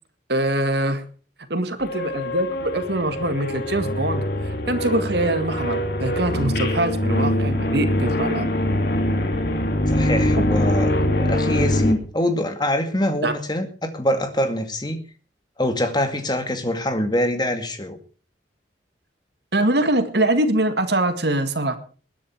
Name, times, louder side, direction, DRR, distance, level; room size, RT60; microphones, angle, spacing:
voice 1, 0.3-1.0 1.5-8.5 10.4-10.5 13.2-13.3 19.5-21.8, right 1 dB, 60° right, 9 dB, 2.0 m, -23 dB
sound 1, 1.8-11.9, left 1 dB, 55° left, 2.7 m, -23 dB
voice 2, 9.9-10.9 11.2-15.0 15.6-18.0, left 1 dB, 20° left, 7 dB, 2.2 m, -24 dB
20.5 x 10.5 x 4.8 m, 0.38 s
head